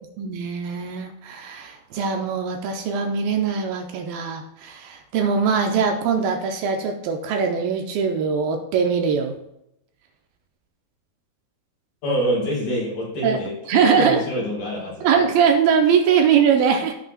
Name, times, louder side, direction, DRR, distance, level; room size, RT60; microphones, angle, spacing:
voice 1, 0.2-9.4 13.2-13.4 13.7-14.2 15.0-16.9, right 6 dB, 80° right, 3 dB, 2.4 m, -21 dB
voice 2, 12.0-15.1, equal, 60° left, -5 dB, 5.4 m, -26 dB
15.5 x 5.9 x 2.3 m, 0.80 s
omnidirectional pair, 4.5 m